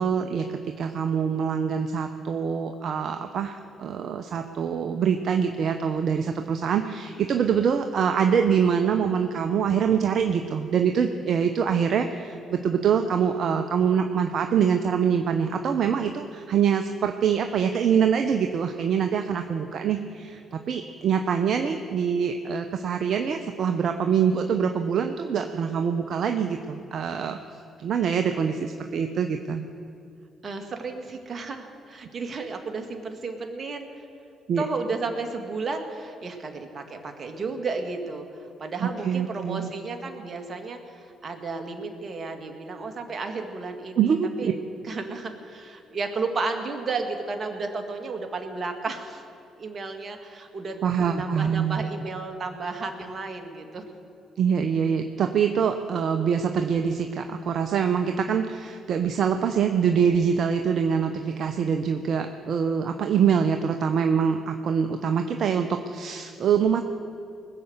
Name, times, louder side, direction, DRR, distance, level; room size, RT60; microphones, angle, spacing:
voice 1, 0.0-27.4 27.8-29.6 34.5-34.6 38.8-39.7 44.0-44.5 50.8-51.8 54.4-66.8, right 7 dB, 60° right, 6 dB, 0.7 m, -24 dB
voice 2, 30.4-34.1 34.6-44.5 44.8-49.2 49.6-53.8, right 3 dB, 45° right, 5 dB, 2.0 m, -33 dB
20.5 x 6.9 x 8.0 m, 2.6 s
hypercardioid pair, 55°, 0 cm